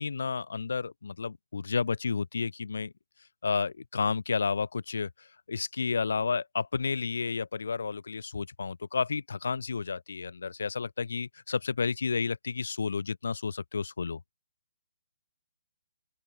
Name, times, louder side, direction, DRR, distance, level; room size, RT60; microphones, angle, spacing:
voice 1, 0.0-2.9 3.4-14.2, left 5 dB, 75° left, 0.3 m, -31 dB
open air
hypercardioid pair, 175°, 0 cm